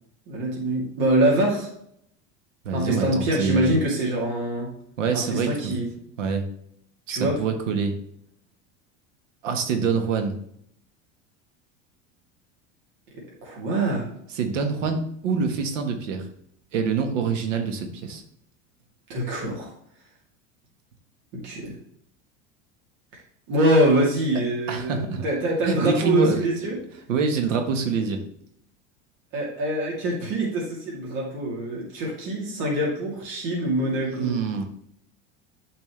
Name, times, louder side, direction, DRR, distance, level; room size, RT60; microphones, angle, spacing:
voice 1, 0.3-1.7 2.7-4.7 5.1-5.9 7.1-7.4 13.4-14.1 19.1-19.7 21.3-21.7 23.5-26.7 29.3-34.4, right 1 dB, 65° right, -3 dB, 2.8 m, -24 dB
voice 2, 2.6-3.8 5.0-5.7 6.2-6.4 7.1-7.9 9.4-10.3 14.3-16.3 16.7-18.2 24.7-25.2 25.6-26.4 26.6-26.7 27.1-28.2 34.1-34.6, right 5 dB, 90° right, 6 dB, 1.4 m, -25 dB
9.0 x 5.2 x 3.2 m, 0.70 s
supercardioid pair, 95°, 37 cm